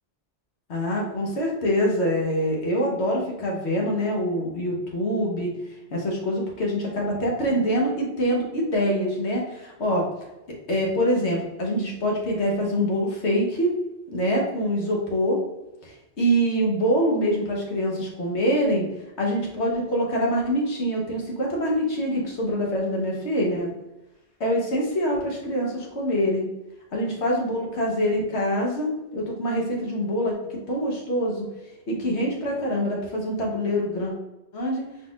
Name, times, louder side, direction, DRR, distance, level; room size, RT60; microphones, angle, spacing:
voice 1, 0.7-5.5 5.9-10.1 10.7-13.7 14.1-15.4 15.8-18.9 19.2-23.7 24.4-26.5 26.9-31.4 31.9-34.1 34.5-34.9, equal, 75° left, -1 dB, 1.4 m, -25 dB
4.4 x 3.8 x 2.4 m, 0.97 s
omnidirectional pair, 1.2 m